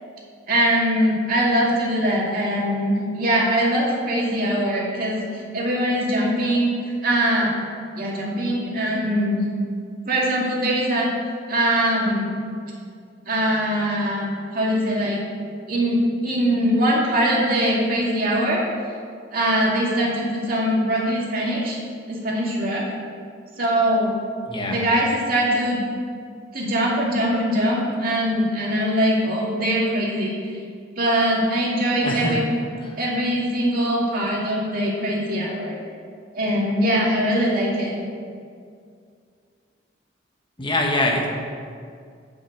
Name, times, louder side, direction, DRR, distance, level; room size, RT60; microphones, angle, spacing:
voice 1, 0.5-6.8 7.0-7.5 7.9-9.4 10.1-11.1 11.5-12.4 13.3-15.2 15.7-18.6 19.3-21.8 22.1-22.8 23.6-24.1 24.6-25.8 26.5-30.5 31.0-32.5 33.0-35.8 36.3-37.9, equal, 50° right, -4 dB, 2.3 m, -22 dB
voice 2, 24.5-24.8 32.0-32.4 40.6-41.3, left 1 dB, 25° left, 0 dB, 1.4 m, -23 dB
8.1 x 5.9 x 7.9 m, 2.2 s
head